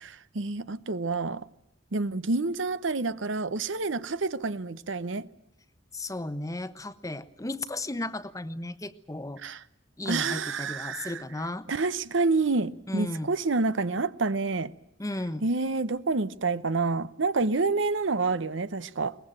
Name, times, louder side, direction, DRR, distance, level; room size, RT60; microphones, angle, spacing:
voice 1, 0.0-1.5 1.9-5.3 9.4-9.6 10.0-11.2 11.7-14.7 15.4-19.2, right 3 dB, 70° right, 0.8 m, -28 dB
voice 2, 5.9-9.4 10.0-11.7 12.9-13.3 15.0-15.5, left 2 dB, 15° left, 1.0 m, -34 dB
22.5 x 20.0 x 8.9 m
head